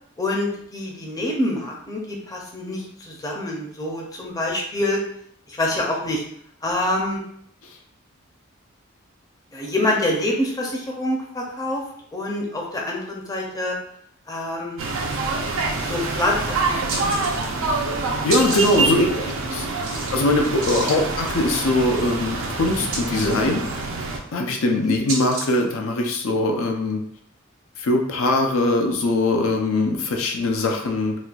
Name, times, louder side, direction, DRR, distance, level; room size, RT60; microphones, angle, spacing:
voice 1, 0.2-5.0 5.5-6.2 6.6-7.2 9.5-11.8 12.1-13.8 14.3-14.8 15.8-17.3 18.8-19.3 20.9-21.0 24.9-25.0, left 1 dB, 15° left, -1 dB, 0.5 m, -26 dB
sound 1, 14.8-24.2, right 3 dB, 65° right, 0.5 m, -26 dB
sound 2, 16.9-17.7 18.0-25.7, right 3 dB, 80° right, 1.1 m, -33 dB
voice 2, 18.2-19.1 19.5-19.7 20.1-23.6 24.3-27.0 27.8-31.2, left 2 dB, 75° left, 2 dB, 0.5 m, -21 dB
4.1 x 2.2 x 2.3 m, 0.66 s
head